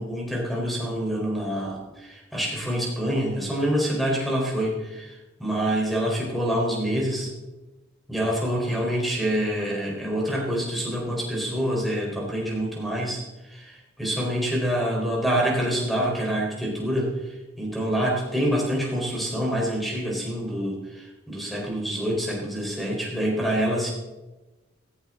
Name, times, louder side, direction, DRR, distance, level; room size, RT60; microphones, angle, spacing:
voice 1, 0.0-7.3 8.1-13.2 13.5-23.9, equal, ahead, -2 dB, 4.3 m, -26 dB
16.5 x 16.0 x 3.9 m, 1.1 s
head